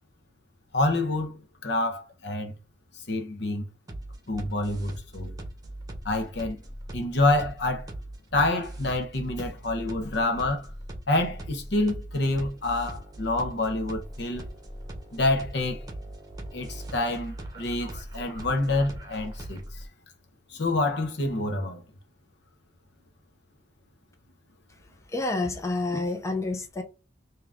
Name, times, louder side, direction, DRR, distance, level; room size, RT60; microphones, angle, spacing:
voice 1, 0.7-2.5 3.1-3.6 4.3-5.3 6.0-6.6 6.9-7.9 8.3-10.7 11.1-14.5 15.1-15.8 16.5-19.8 20.5-21.8, left 2 dB, 65° left, 0.9 m, -27 dB
sound 1, 3.9-19.9, right 1 dB, 20° right, 1.0 m, -40 dB
voice 2, 25.1-26.8, left 2 dB, 15° left, 0.6 m, -28 dB
3.7 x 2.9 x 3.5 m
head